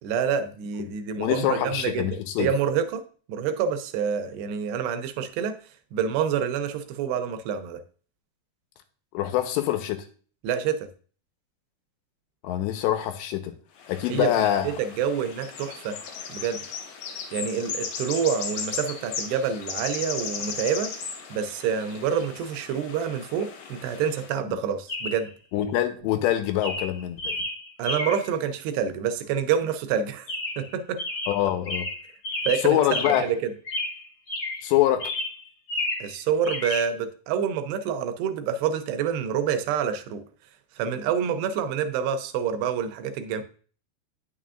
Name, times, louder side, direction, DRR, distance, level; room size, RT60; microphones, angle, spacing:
voice 1, 0.0-5.6 5.9-7.8 10.4-10.9 14.1-14.3 14.6-16.0 16.3-16.6 17.3-21.0 21.3-25.3 27.8-30.3 30.6-31.0 32.5-33.5 36.0-40.3 40.8-43.4, right 7 dB, 80° right, 9 dB, 2.7 m, -27 dB
voice 2, 1.2-2.5 9.1-10.1 12.4-13.5 13.9-14.8 24.5-24.6 25.5-27.4 31.3-31.9 32.6-33.3 34.6-35.1, left 12 dB, 85° left, 8 dB, 3.0 m, -25 dB
sound 1, 13.8-24.3, left 6 dB, 65° left, 3.0 m, -36 dB
Chirp tweet, 22.1-22.3 24.9-25.3 26.0-26.3 26.6-28.3 30.3-30.7 31.0-33.4 33.6-34.7 35.0-36.1 36.4-36.9, left 2 dB, 40° left, 1.8 m, -31 dB
9.4 x 6.8 x 2.5 m, 0.41 s
omnidirectional pair, 5.1 m